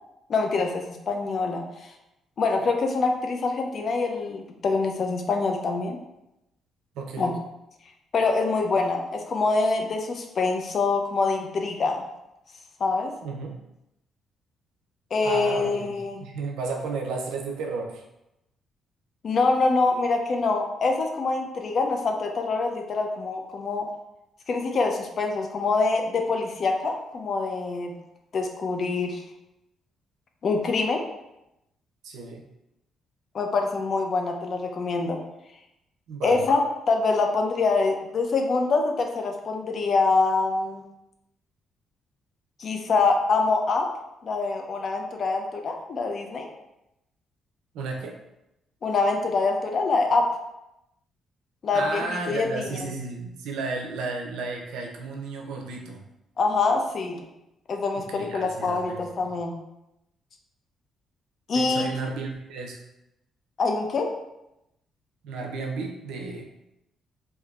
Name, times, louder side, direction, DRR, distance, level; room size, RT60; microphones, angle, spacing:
voice 1, 0.3-1.9 2.4-6.0 7.2-7.4 8.1-12.1 12.8-13.1 15.1-16.2 19.2-23.9 24.5-27.9 28.3-29.2 30.4-31.0 33.3-35.2 36.2-40.8 42.6-43.9 44.2-46.5 48.8-50.3 51.6-52.8 56.4-57.2 57.7-59.6 61.5-61.9 63.6-64.1, left 3 dB, 50° left, 4 dB, 0.5 m, -25 dB
voice 2, 6.9-7.3 13.2-13.5 15.2-18.0 32.0-32.4 36.1-36.5 47.7-48.2 51.7-56.0 57.9-59.1 61.5-62.8 65.2-66.5, right 3 dB, 90° right, 1 dB, 0.5 m, -33 dB
3.5 x 2.6 x 2.4 m, 0.89 s
cardioid pair, 90°, 0 cm